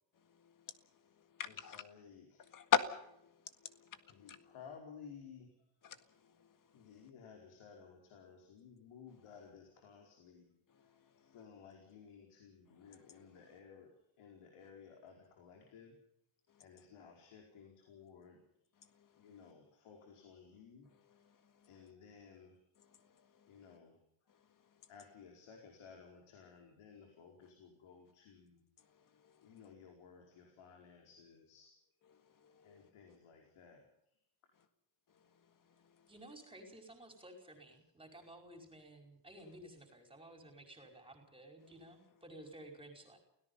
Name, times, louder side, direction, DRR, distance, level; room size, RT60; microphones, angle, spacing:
voice 1, 0.4-0.8 1.4-1.8 2.5-3.3 3.6-4.5 5.8-6.0 6.2-6.5 19.0-19.2 23.4-23.5 29.2-29.5 32.3-32.8, left 8 dB, 40° left, 1.8 m, -38 dB
voice 2, 1.5-2.5 3.7-5.7 6.7-16.0 16.6-18.5 19.2-21.4 21.6-22.6 23.5-24.0 24.9-28.7 29.4-31.8 32.6-34.1 34.4-34.5 37.4-37.6, left 6 dB, 90° left, 5.0 m, -57 dB
voice 3, 36.1-43.2, right 1 dB, 10° right, 5.2 m, -54 dB
29.0 x 18.0 x 5.6 m
cardioid pair, 180°, 48 cm